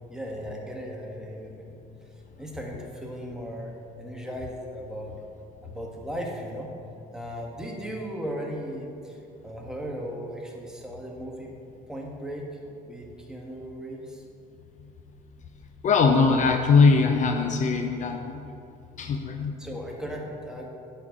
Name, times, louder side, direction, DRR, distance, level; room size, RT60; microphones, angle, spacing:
voice 1, 0.1-1.8 2.4-5.2 5.6-6.7 7.1-11.5 11.9-12.5 12.9-14.2 19.6-20.7, equal, 5° right, -1 dB, 1.4 m, -37 dB
voice 2, 15.8-18.5 19.0-19.6, left 4 dB, 45° left, 4 dB, 0.6 m, -21 dB
9.9 x 4.5 x 6.4 m, 2.7 s
cardioid pair, 110°, 17 cm